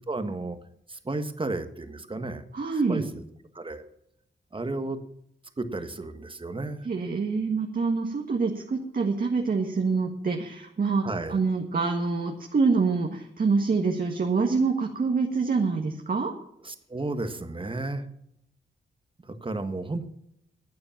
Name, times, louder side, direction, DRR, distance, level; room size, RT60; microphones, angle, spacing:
voice 1, 0.1-0.6 0.9-2.4 2.9-3.2 3.5-3.8 4.5-5.0 5.6-6.9 11.0-11.4 16.6-18.0 19.2-20.1, right 2 dB, 25° right, 9 dB, 1.6 m, -33 dB
voice 2, 2.5-3.1 6.8-16.3, right 4 dB, 50° right, 2 dB, 1.8 m, -26 dB
12.0 x 8.6 x 7.3 m, 0.74 s
cardioid pair, 80°, 19 cm